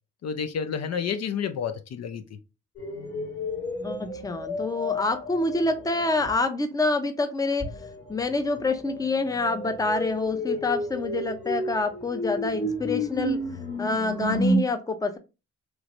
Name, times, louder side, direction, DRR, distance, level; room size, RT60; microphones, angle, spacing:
voice 1, 0.2-2.2, left 7 dB, 60° left, 0.5 m, -30 dB
sound 1, 2.8-6.4 7.6-14.6, left 1 dB, 40° left, 1.5 m, -31 dB
voice 2, 3.8-7.7 8.1-13.4 13.8-15.2, left 3 dB, 10° left, 0.6 m, -27 dB
3.1 x 3.1 x 2.5 m
cardioid pair, 65°, 30 cm